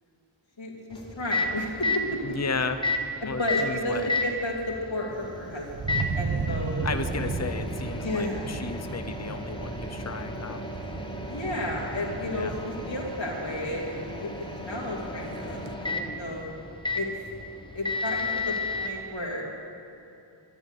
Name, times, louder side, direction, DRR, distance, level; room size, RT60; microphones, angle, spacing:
voice 1, 0.6-2.0 3.2-6.8 8.0-8.5 11.3-16.5 16.9-17.1 17.7-19.6, left 1 dB, 75° left, -4 dB, 2.7 m, -32 dB
Microwave oven, 0.9-18.9, left 2 dB, 10° left, 1.2 m, -34 dB
voice 2, 2.2-2.8 3.3-4.1 6.8-10.6 12.3-12.5, left 4 dB, 35° left, 9 dB, 0.8 m, -33 dB
Thunder, 5.1-15.7, right 4 dB, 45° right, 0.9 m, -36 dB
12.0 x 11.5 x 8.1 m, 2.7 s
wide cardioid pair, 70°, 46 cm